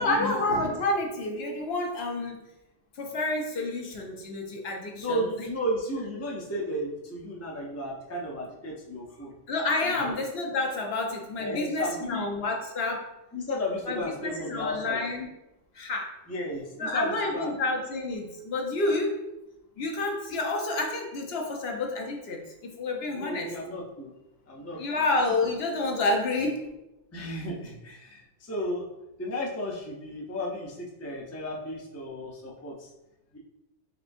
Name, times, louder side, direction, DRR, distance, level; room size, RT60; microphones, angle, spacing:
voice 1, 0.0-2.4 3.0-5.3 9.5-13.1 13.9-15.3 15.7-16.1 16.8-19.2 19.8-22.4 22.8-23.5 24.8-26.7, left 2 dB, 60° left, 2 dB, 0.7 m, -29 dB
voice 2, 4.9-9.3 9.8-10.2 11.4-12.2 13.3-15.0 16.3-17.6 23.1-24.1 24.5-24.8 27.1-28.9 29.2-32.9 33.3-33.4, equal, 20° left, -2 dB, 0.3 m, -33 dB
4.2 x 3.4 x 2.6 m, 0.94 s
omnidirectional pair, 1.3 m